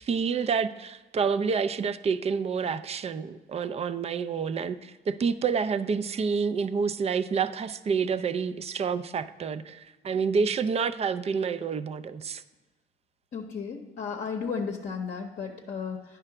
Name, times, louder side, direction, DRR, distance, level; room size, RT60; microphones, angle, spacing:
voice 1, 0.0-12.4, right 5 dB, 30° right, 13 dB, 0.4 m, -28 dB
voice 2, 13.3-16.0, left 5 dB, 50° left, 1 dB, 0.8 m, -34 dB
9.7 x 3.4 x 5.8 m, 1.2 s
cardioid pair, 90°, 20 cm